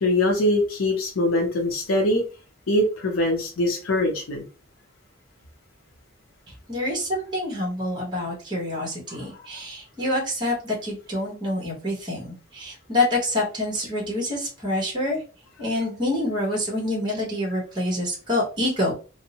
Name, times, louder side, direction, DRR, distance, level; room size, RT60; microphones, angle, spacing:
voice 1, 0.0-2.2 2.7-4.4 9.1-9.4, left 1 dB, 80° left, 0 dB, 0.6 m, -23 dB
voice 2, 6.7-15.2 15.6-18.9, left 1 dB, 25° right, -3 dB, 1.0 m, -27 dB
2.6 x 2.0 x 2.7 m, 0.34 s
head